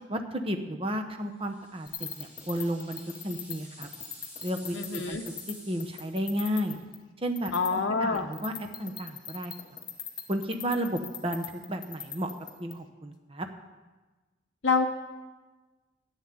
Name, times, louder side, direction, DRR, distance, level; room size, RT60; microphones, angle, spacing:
voice 1, 0.1-3.9 4.4-5.2 5.5-6.8 7.2-8.5 8.8-9.5 10.3-12.3 12.6-13.5, equal, 25° right, 5 dB, 1.0 m, -33 dB
sound 1, 1.5-6.3, equal, 10° right, 4.3 m, -50 dB
sound 2, 1.9-5.0 5.3-5.5 5.8-6.9 7.4-7.7 8.1-12.7, left 8 dB, 20° left, 1.0 m, -40 dB
voice 2, 4.7-5.2 7.5-8.3 14.6-14.9, left 4 dB, 60° left, 2 dB, 0.8 m, -26 dB
11.0 x 7.4 x 9.5 m, 1.2 s
head